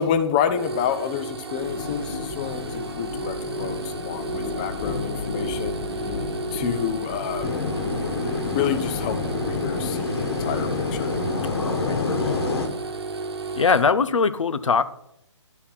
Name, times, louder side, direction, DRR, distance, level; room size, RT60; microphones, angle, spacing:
voice 1, 0.0-6.1 6.5-7.5 8.4-11.2, left 8 dB, 15° left, 10 dB, 0.3 m, -28 dB
sound 1, 0.5-13.8, right 3 dB, 55° right, 1.1 m, -33 dB
sound 2, 1.6-11.7, left 5 dB, 35° left, 1.4 m, -35 dB
sound 3, 7.4-12.7, left 3 dB, 55° left, 1.6 m, -27 dB
voice 2, 11.6-12.4 13.5-14.8, left 5 dB, 80° left, 14 dB, 0.6 m, -22 dB
11.5 x 4.2 x 5.6 m, 0.79 s
figure-of-eight pair, 145°, 16 cm